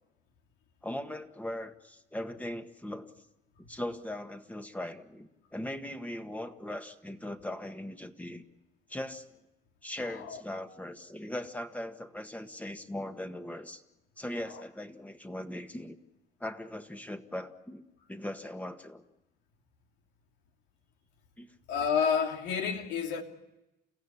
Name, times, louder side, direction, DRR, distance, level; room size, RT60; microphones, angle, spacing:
voice 1, 0.8-3.1 3.7-8.4 8.9-9.3 9.8-13.8 14.2-16.0 16.4-17.8 18.1-19.0 21.4-21.5, left 1 dB, 10° left, 1.7 m, -39 dB
voice 2, 10.0-10.4 14.4-14.6 21.7-23.2, left 6 dB, 90° left, 2.8 m, -30 dB
29.5 x 16.0 x 9.9 m
cardioid pair, 110°, 17 cm